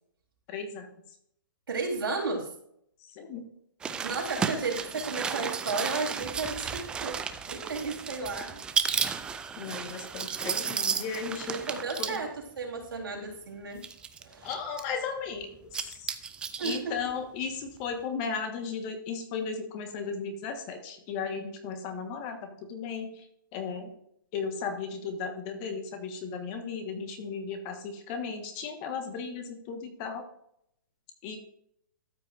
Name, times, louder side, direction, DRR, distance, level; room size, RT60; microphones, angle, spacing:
voice 1, 0.5-0.9 3.0-3.4 9.6-11.6 12.0-12.2 14.4-16.1 16.6-23.3 23.5-23.9 24.3-30.2 31.2-31.4, left 5 dB, 30° left, 6 dB, 1.3 m, -35 dB
voice 2, 1.7-2.5 4.0-8.6 11.5-13.8 14.2-14.5 16.6-17.0, right 3 dB, 80° right, -1 dB, 3.5 m, -33 dB
sound 1, 3.8-12.2 13.0-13.1 13.8-14.8 15.6-16.8 17.1-17.2, right 6 dB, 10° right, 0.3 m, -33 dB
13.0 x 5.8 x 2.5 m, 0.72 s
hypercardioid pair, 150°, 11 cm